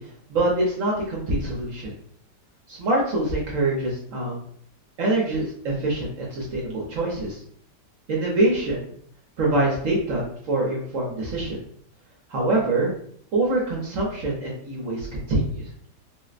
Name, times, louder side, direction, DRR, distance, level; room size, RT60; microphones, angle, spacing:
voice 1, 0.0-1.9 2.7-4.4 5.0-7.4 8.1-8.9 9.4-11.6 12.3-12.9 13.3-15.6, right 2 dB, 60° right, -3 dB, 0.9 m, -25 dB
4.0 x 2.0 x 2.4 m, 0.62 s
omnidirectional pair, 1.8 m